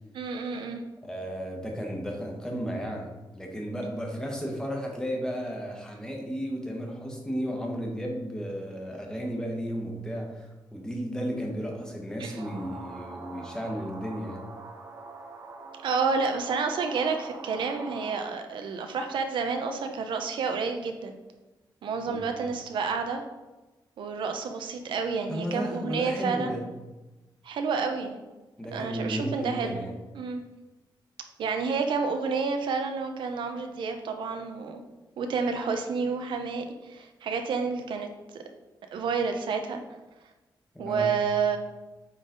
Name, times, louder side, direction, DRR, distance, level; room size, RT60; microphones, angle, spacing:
voice 1, 0.1-0.8 12.2-12.4 15.8-21.1 21.8-23.2 24.0-26.6 27.4-28.2 28.7-29.8 30.1-30.4 31.4-34.8 35.2-38.1 38.9-39.8 40.8-41.6, right 5 dB, 90° right, 5 dB, 0.8 m, -29 dB
voice 2, 1.0-14.4 22.1-22.5 25.3-26.6 28.6-30.0 40.7-41.2, equal, 10° left, 0 dB, 1.2 m, -34 dB
sound 1, 12.4-18.2, right 3 dB, 40° right, 0.9 m, -43 dB
8.8 x 4.0 x 3.9 m, 1.1 s
wide cardioid pair, 160°, 8 cm